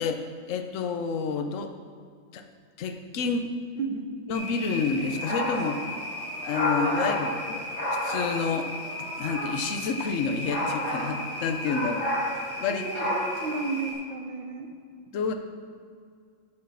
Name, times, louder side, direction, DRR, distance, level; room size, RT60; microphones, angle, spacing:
voice 1, 0.0-1.7 2.3-2.4 2.8-3.5 4.3-5.9 6.4-7.6 7.9-8.7 9.0-12.1 12.4-13.2 15.1-15.3, left 5 dB, 55° left, 6 dB, 0.9 m, -29 dB
sound 1, 4.3-13.9, left 1 dB, 30° left, 2.7 m, -31 dB
voice 2, 12.7-14.7, right 4 dB, 80° right, 4 dB, 1.7 m, -33 dB
8.5 x 6.3 x 6.9 m, 2.1 s
omnidirectional pair, 2.1 m